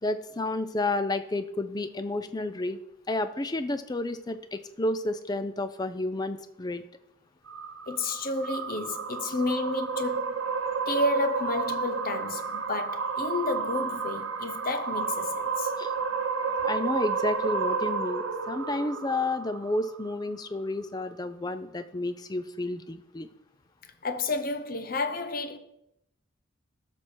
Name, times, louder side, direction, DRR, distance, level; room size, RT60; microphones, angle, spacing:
voice 1, 0.0-2.8 3.1-6.8 15.8-15.9 16.6-23.3, left 2 dB, 20° left, 0.4 m, -31 dB
sound 1, 7.5-20.0, right 5 dB, 80° right, 0.8 m, -31 dB
voice 2, 7.9-10.4 10.9-15.7 24.0-25.6, left 3 dB, 45° left, 0.8 m, -31 dB
12.5 x 6.1 x 4.4 m
head